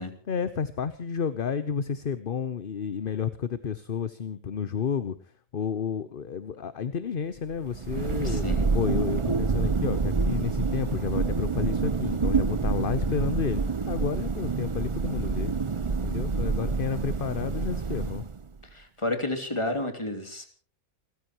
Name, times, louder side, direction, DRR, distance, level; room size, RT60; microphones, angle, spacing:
voice 1, 0.3-5.2 5.5-8.4 8.7-13.6 13.9-15.5 16.0-18.2, left 7 dB, 45° left, 13 dB, 0.9 m, -31 dB
Thunder, 7.5-18.6, right 4 dB, 35° right, 0.5 m, -27 dB
voice 2, 8.2-8.7 18.7-20.5, left 1 dB, 20° left, 6 dB, 2.7 m, -31 dB
29.5 x 14.5 x 3.0 m, 0.41 s
omnidirectional pair, 1.5 m